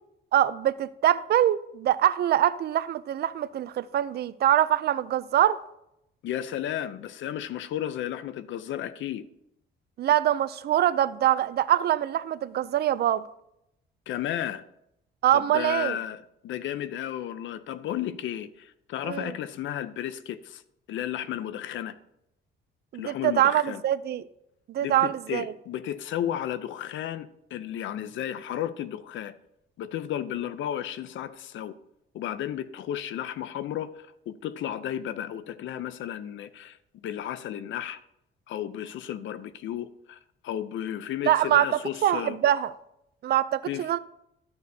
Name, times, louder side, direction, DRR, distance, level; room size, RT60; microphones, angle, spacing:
voice 1, 0.3-5.6 10.0-13.2 15.2-16.0 19.0-19.3 22.9-24.2 24.7-25.5 41.2-41.7 42.0-42.7 43.2-44.0, right 12 dB, 55° right, 0.4 m, -24 dB
voice 2, 6.2-9.2 14.1-14.6 15.3-20.6 20.9-22.0 23.0-23.8 24.8-29.3 29.8-31.8 32.1-38.0 38.5-40.2 40.4-42.4 43.7-43.9, left 11 dB, 75° left, 0.6 m, -33 dB
13.0 x 6.7 x 2.7 m
cardioid pair, 90°, 20 cm